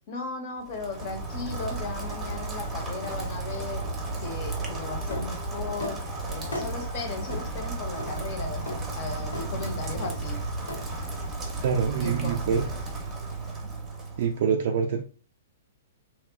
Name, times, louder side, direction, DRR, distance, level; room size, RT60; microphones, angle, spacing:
voice 1, 0.1-3.8 4.2-6.0 6.3-8.7 8.9-10.4 12.0-12.4, left 3 dB, 50° left, 3 dB, 0.7 m, -36 dB
Rain, 0.6-14.4, right 2 dB, 20° right, 0.6 m, -34 dB
sound 1, 5.1-5.3 5.8-6.0 6.5-6.7 7.3-7.4 8.0-8.1 8.7-8.8 9.3-9.5 10.0-10.2 10.7-10.8, left 2 dB, 85° left, 0.6 m, -35 dB
voice 2, 11.6-12.6 14.2-15.0, right 6 dB, 55° right, 3 dB, 0.3 m, -25 dB
2.8 x 2.1 x 2.2 m, 0.39 s
figure-of-eight pair, 115°, 0 cm